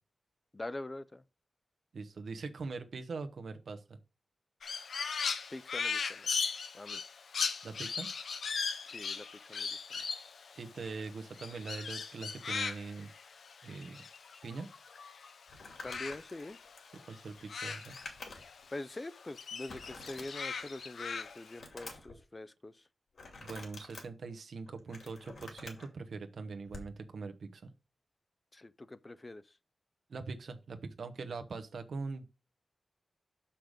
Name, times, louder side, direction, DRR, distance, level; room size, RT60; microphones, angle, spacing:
voice 1, 0.5-1.2 5.5-6.3 6.7-7.0 8.9-10.0 15.8-16.6 18.7-22.8 28.5-29.5, left 2 dB, 25° left, 0.4 m, -44 dB
voice 2, 1.9-4.0 7.6-8.1 10.6-13.1 13.6-14.0 14.4-14.7 17.1-17.9 23.4-27.7 30.1-32.2, right 4 dB, 80° right, 1.1 m, -42 dB
Crow, 4.6-15.3 15.6-18.6 18.9-21.6, left 5 dB, 90° left, 0.8 m, -38 dB
Crumpling crinkling, 15.5-18.7 19.0-19.1 19.7-20.8 21.2-22.2 23.1-24.0 24.7-25.9 26.7-26.9, left 3 dB, 65° left, 2.4 m, -49 dB
6.5 x 5.8 x 5.1 m
wide cardioid pair, 125°, 0 cm